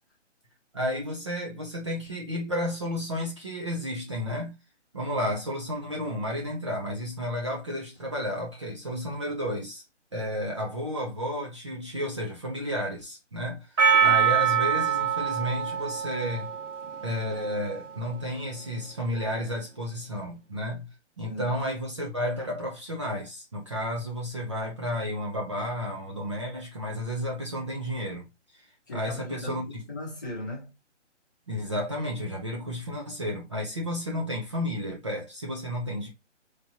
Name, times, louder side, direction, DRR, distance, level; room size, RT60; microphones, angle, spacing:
voice 1, 0.7-4.5 4.9-9.8 10.1-13.7 14.0-16.5 17.0-20.9 21.2-28.3 28.5-28.6 28.9-29.7 31.5-36.1, equal, 25° right, 0.8 m, -32 dB
Percussion, 13.8-18.3, right 7 dB, 90° right, 1.5 m, -25 dB
voice 2, 21.2-21.6 28.9-30.7, left 2 dB, 15° left, 1.0 m, -38 dB
4.2 x 3.2 x 2.8 m
hypercardioid pair, 175°, 36 cm